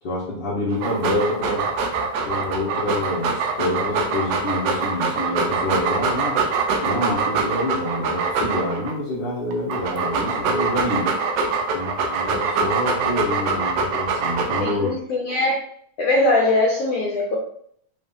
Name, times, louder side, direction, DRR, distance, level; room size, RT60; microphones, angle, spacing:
voice 1, 0.0-1.7 2.3-6.4 6.8-11.1 11.7-15.0, left 1 dB, 60° left, -8 dB, 1.1 m, -27 dB
Dog, 0.7-8.9 9.5-14.9, right 4 dB, 75° right, 2.0 m, -24 dB
voice 2, 14.6-15.6 16.0-17.4, left 2 dB, 85° left, -3 dB, 1.4 m, -21 dB
5.4 x 3.3 x 2.6 m, 0.64 s
omnidirectional pair, 3.8 m